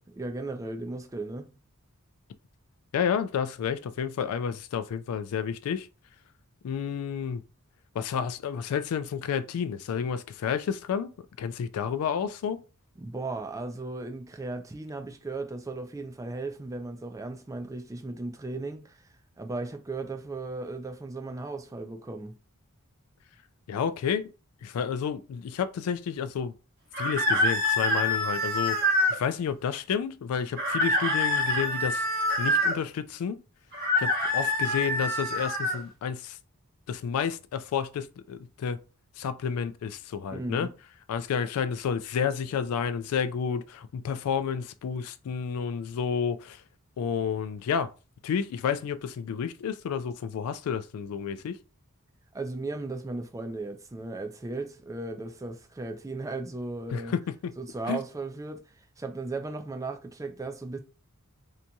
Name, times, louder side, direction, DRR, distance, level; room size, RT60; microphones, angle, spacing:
voice 1, 0.0-1.6 13.0-19.0 19.4-22.4 40.3-40.7 52.3-57.1 57.6-58.7 59.0-60.8, right 2 dB, 15° right, 0.3 m, -36 dB
voice 2, 2.9-5.9 6.6-7.4 8.0-12.6 23.7-24.3 24.6-26.5 27.0-28.8 29.1-32.0 32.4-33.4 34.0-36.4 36.9-38.8 39.2-40.7 41.1-46.6 47.0-47.9 48.2-51.6 56.9-57.5 57.9-58.0, left 7 dB, 80° left, 0.3 m, -30 dB
sound 1, 26.9-29.2 30.6-32.8 33.7-35.8, left 1 dB, 45° right, 0.9 m, -26 dB
2.8 x 2.6 x 2.2 m
head